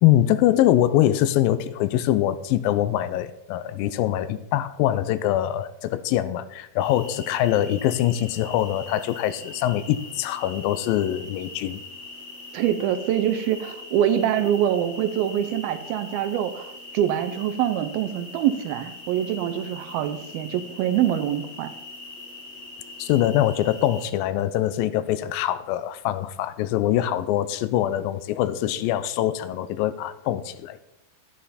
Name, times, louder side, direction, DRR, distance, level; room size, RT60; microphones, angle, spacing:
voice 1, 0.0-11.8 23.0-30.8, left 12 dB, 85° left, 14 dB, 2.3 m, -23 dB
sound 1, 6.8-24.1, left 2 dB, 45° left, 0.8 m, -42 dB
voice 2, 12.5-21.7, right 10 dB, 90° right, 10 dB, 2.6 m, -24 dB
11.5 x 9.2 x 4.2 m, 0.83 s
omnidirectional pair, 4.2 m